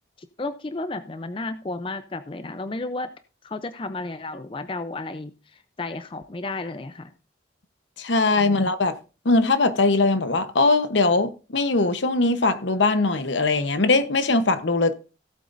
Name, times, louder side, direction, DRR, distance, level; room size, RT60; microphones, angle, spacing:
voice 1, 0.2-3.1 3.4-7.1 8.4-8.6, left 2 dB, 30° left, 0.5 m, -33 dB
voice 2, 8.0-8.9 9.2-14.9, left 3 dB, 75° left, 0.9 m, -21 dB
16.5 x 7.9 x 2.6 m
head